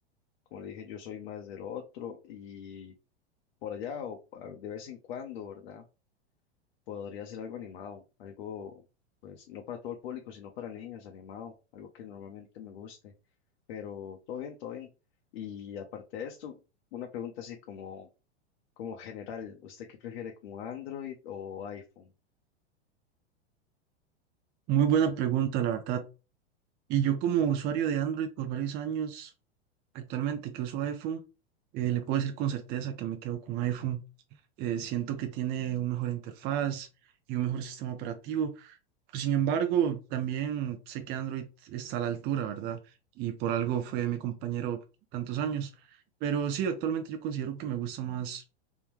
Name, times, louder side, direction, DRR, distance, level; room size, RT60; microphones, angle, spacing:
voice 1, 0.5-2.9 3.6-5.8 6.9-8.8 9.2-13.1 13.7-14.9 15.3-16.6 16.9-18.1 18.8-22.1, left 8 dB, 65° left, 0.7 m, -41 dB
voice 2, 24.7-26.0 26.9-29.3 29.9-31.2 31.7-34.0 34.6-36.9 37.3-38.8 39.1-42.8 43.2-44.8 45.1-48.4, right 9 dB, 30° right, 0.4 m, -30 dB
3.6 x 2.2 x 3.0 m
hypercardioid pair, 110°, 33 cm